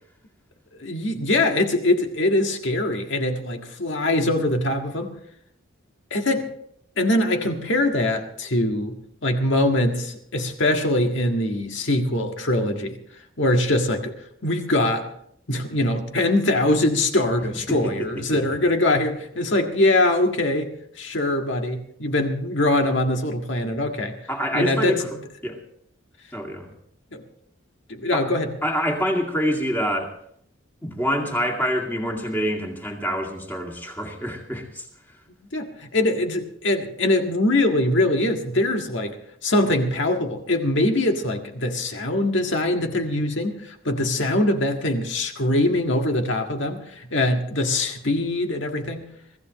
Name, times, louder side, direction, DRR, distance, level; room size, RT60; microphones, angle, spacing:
voice 1, 0.8-5.1 6.1-6.5 7.0-9.0 9.2-13.0 13.4-14.1 14.4-15.1 15.5-24.2 24.5-25.0 27.1-27.2 27.9-28.5 35.5-39.2 39.4-49.1, left 1 dB, 65° left, 4 dB, 1.8 m, -23 dB
voice 2, 17.7-18.4 24.3-25.1 25.4-25.6 26.3-26.7 28.1-28.3 28.6-30.1 30.8-34.9, equal, 10° left, 1 dB, 2.3 m, -26 dB
23.5 x 15.0 x 3.1 m, 0.69 s
head